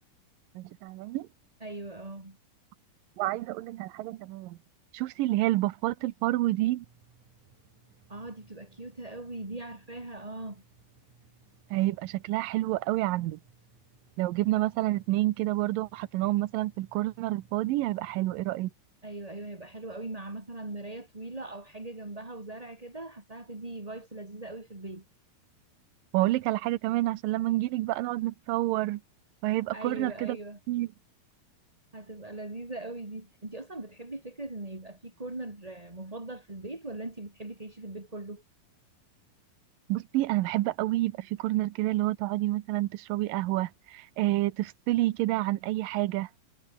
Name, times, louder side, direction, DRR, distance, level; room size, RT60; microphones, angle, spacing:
voice 1, 0.6-1.3 3.2-4.6 4.9-6.9 11.7-13.4 14.2-18.7 26.1-29.0 29.4-30.4 30.7-30.9 39.9-46.3, right 17 dB, 75° right, 2.4 m, -28 dB
voice 2, 1.6-2.4 8.1-10.6 19.0-25.0 29.7-30.6 31.9-38.4, right 2 dB, 10° right, 2.5 m, -40 dB
sound 1, 6.8-18.7, right 4 dB, 50° right, 6.6 m, -61 dB
omnidirectional pair, 4.3 m